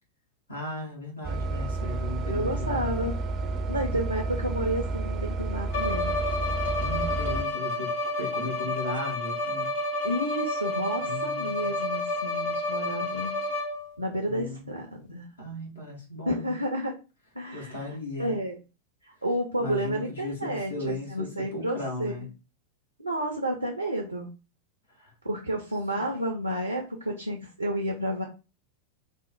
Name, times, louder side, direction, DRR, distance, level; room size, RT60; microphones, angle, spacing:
voice 1, 0.5-3.0 6.8-7.9 8.2-9.7 11.0-11.8 14.2-14.8 15.4-16.5 17.5-18.4 19.6-22.3 25.0-25.1 25.9-26.0, left 2 dB, 80° left, -1 dB, 1.2 m, -36 dB
sound 1, 1.2-7.4, right 3 dB, 30° right, 0.4 m, -31 dB
voice 2, 2.3-3.1 3.7-6.1 10.0-13.4 14.0-15.3 16.3-16.9 17.3-17.9 18.2-18.6 19.0-22.3 23.0-24.3 25.2-28.2, right 1 dB, 85° right, 2 dB, 0.5 m, -31 dB
Bowed string instrument, 5.7-14.0, left 2 dB, 55° left, 0.6 m, -30 dB
3.4 x 2.0 x 4.0 m, 0.31 s
figure-of-eight pair, 90°, 0 cm